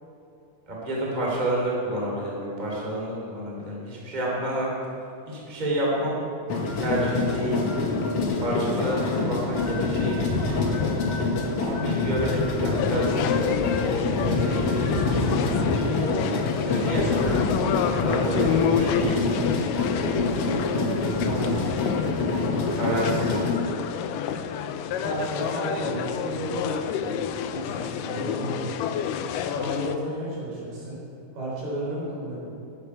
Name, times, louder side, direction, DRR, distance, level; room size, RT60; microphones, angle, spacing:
voice 1, 0.7-4.7 5.3-6.2 6.8-7.6 8.4-10.2 10.4-11.0 11.6-16.2 16.6-19.2 19.6-20.0 22.7-23.5 28.1-28.4, right 1 dB, 15° right, -4 dB, 2.3 m, -30 dB
sound 1, 6.5-23.6, left 3 dB, 60° left, 1.6 m, -26 dB
sound 2, 12.8-30.0, left 8 dB, 80° left, 1.9 m, -29 dB
voice 2, 20.9-22.2 25.0-27.2 27.5-28.9 29.5-31.0 31.3-32.4, right 1 dB, 85° right, -5 dB, 5.8 m, -33 dB
15.0 x 10.0 x 4.7 m, 2.6 s
omnidirectional pair, 4.3 m